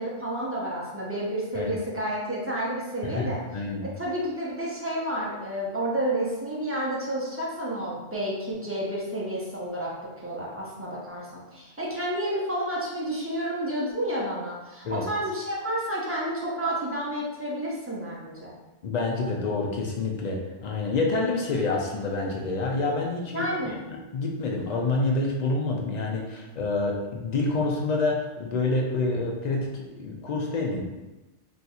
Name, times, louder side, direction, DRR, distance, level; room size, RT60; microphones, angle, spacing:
voice 1, 0.0-3.4 3.8-9.9 10.2-18.5 23.3-23.8, right 1 dB, 20° right, -6 dB, 0.4 m, -30 dB
voice 2, 3.5-3.9 14.8-15.0 18.8-23.5 23.9-30.8, left 3 dB, 75° left, 0 dB, 0.4 m, -27 dB
2.5 x 2.3 x 4.1 m, 1.1 s
omnidirectional pair, 1.3 m